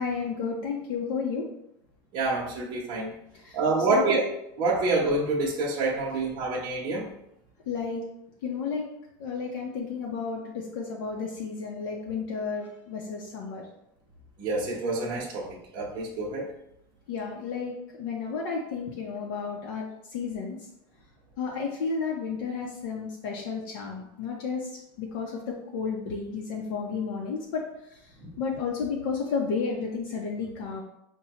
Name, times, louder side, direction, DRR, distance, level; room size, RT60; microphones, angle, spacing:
voice 1, 0.0-1.5 3.3-3.6 3.9-4.2 7.7-8.0 8.4-8.8 9.2-13.7 17.1-20.6 21.4-27.6 28.4-30.8, left 5 dB, 70° left, -2 dB, 0.7 m, -32 dB
voice 2, 2.1-3.1 3.5-4.3 4.6-7.1 14.4-16.5 28.2-28.3, right 3 dB, 40° right, -3 dB, 0.8 m, -27 dB
5.6 x 2.2 x 2.9 m, 0.79 s
supercardioid pair, 155°, 12 cm